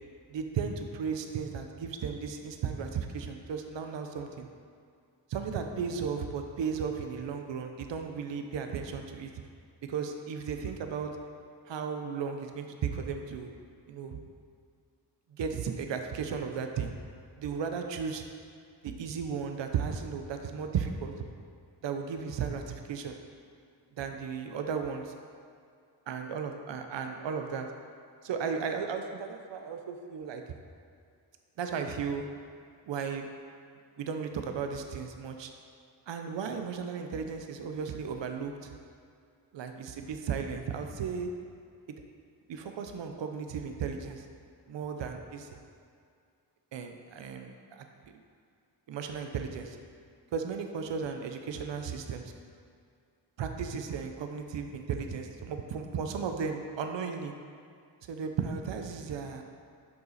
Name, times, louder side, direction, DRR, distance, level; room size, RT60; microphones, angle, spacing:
voice 1, 0.3-4.5 5.3-9.3 9.8-11.1 11.7-13.5 13.9-14.3 15.3-16.9 17.4-18.2 18.8-21.1 21.8-23.2 24.0-25.1 26.1-27.7 28.2-30.4 31.6-32.2 32.8-33.3 34.0-35.5 36.1-38.7 39.5-41.3 41.9-42.0 42.5-44.3 44.7-45.6 46.7-48.2 48.9-49.8 50.3-52.2 53.4-57.3 58.1-59.4, right 6 dB, 80° right, 5 dB, 0.7 m, -35 dB
10.5 x 5.7 x 4.1 m, 2.3 s
wide cardioid pair, 115°, 43 cm